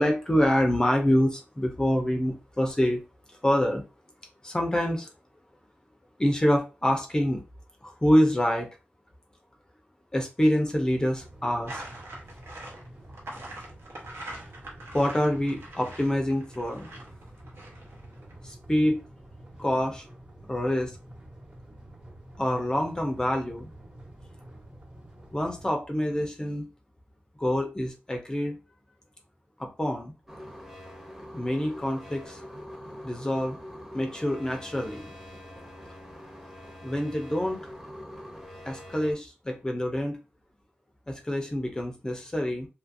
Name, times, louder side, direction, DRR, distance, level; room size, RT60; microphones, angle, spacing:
voice 1, 0.0-3.0 3.4-3.8 4.4-5.1 6.2-7.4 7.8-8.7 10.1-11.8 14.9-16.9 18.4-19.1 19.6-20.0 20.5-20.9 22.4-23.7 25.3-26.7 27.4-28.6 29.6-30.1 31.3-32.4 33.0-33.6 33.9-35.1 36.8-37.7 38.6-40.2 41.1-42.7, equal, 15° left, 2 dB, 0.5 m, -26 dB
sound 1, 10.9-25.7, right 1 dB, 30° right, 1.1 m, -48 dB
sound 2, 11.7-18.3, right 1 dB, 70° right, 1.0 m, -43 dB
sound 3, 30.3-39.1, left 1 dB, 10° right, 0.8 m, -44 dB
2.8 x 2.4 x 2.6 m, 0.31 s
wide cardioid pair, 100°, 4 cm